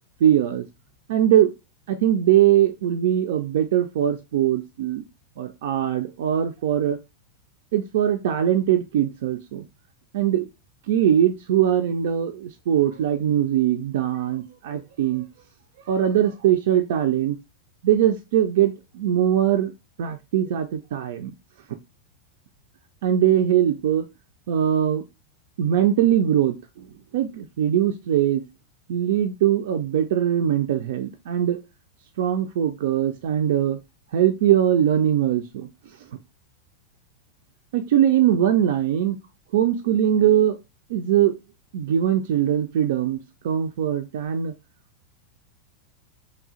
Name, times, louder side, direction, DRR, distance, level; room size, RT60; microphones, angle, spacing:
voice 1, 0.2-0.7 1.1-1.5 1.9-5.0 5.4-7.0 7.7-9.6 10.1-10.5 10.9-15.2 15.9-17.4 17.8-19.7 20.0-21.3 23.0-24.1 24.5-25.0 25.6-26.9 27.1-28.4 28.9-31.6 32.2-33.8 34.1-35.7 37.7-39.2 39.5-40.6 40.9-41.4 41.7-44.5, right 10 dB, 55° right, 6 dB, 0.3 m, -21 dB
3.1 x 2.4 x 3.7 m, 0.25 s
figure-of-eight pair, 90°, 0 cm